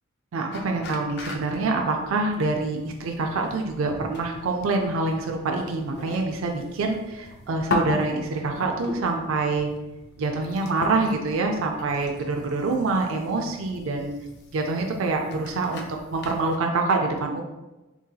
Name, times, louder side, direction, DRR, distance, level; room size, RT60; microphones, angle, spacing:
voice 1, 0.3-9.7 10.2-14.1 14.5-15.9 16.1-17.4, right 3 dB, 70° right, 3 dB, 0.4 m, -26 dB
sound 1, 0.5-16.6, left 2 dB, 50° left, 0.4 m, -38 dB
3.8 x 2.6 x 2.2 m, 1.1 s
head